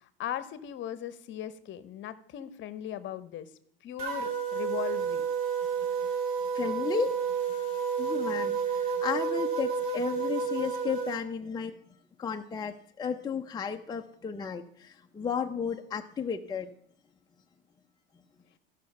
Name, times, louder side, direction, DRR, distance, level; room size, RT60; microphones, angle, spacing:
voice 1, 0.2-3.5 3.8-5.3, left 11 dB, 40° left, 15 dB, 1.0 m, -38 dB
sound 1, 4.0-11.2, right 6 dB, 45° right, 2.7 m, -30 dB
voice 2, 6.5-7.2 8.0-11.7 12.2-16.7, left 7 dB, 15° left, 4 dB, 0.6 m, -33 dB
14.5 x 5.8 x 5.4 m, 0.68 s
hypercardioid pair, 100°, 29 cm